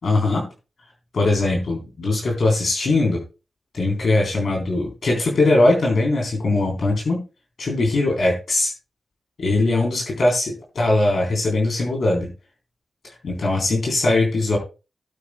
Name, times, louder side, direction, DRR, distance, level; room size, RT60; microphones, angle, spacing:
voice 1, 0.0-0.5 1.1-3.2 3.7-7.2 7.6-8.7 9.4-12.3 13.0-14.6, left 2 dB, 75° left, 0 dB, 3.6 m, -20 dB
17.0 x 8.6 x 2.2 m, 0.30 s
wide cardioid pair, 80°, 0 cm